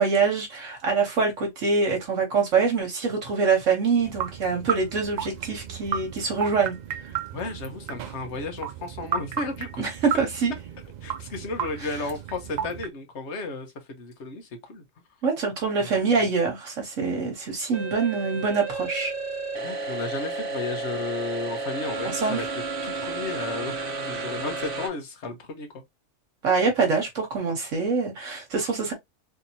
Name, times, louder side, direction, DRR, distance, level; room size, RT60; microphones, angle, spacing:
voice 1, 0.0-6.8 9.8-10.5 15.2-19.1 22.2-22.4 26.4-28.9, right 4 dB, 70° right, 1.3 m, -24 dB
sound 1, 4.0-12.9, right 8 dB, 85° right, 0.3 m, -34 dB
voice 2, 7.3-9.9 11.0-14.8 15.8-16.0 19.5-25.8, left 3 dB, 60° left, 1.2 m, -34 dB
sound 2, 17.7-24.9, right 3 dB, 45° right, 1.0 m, -32 dB
3.5 x 2.8 x 2.7 m
omnidirectional pair, 1.4 m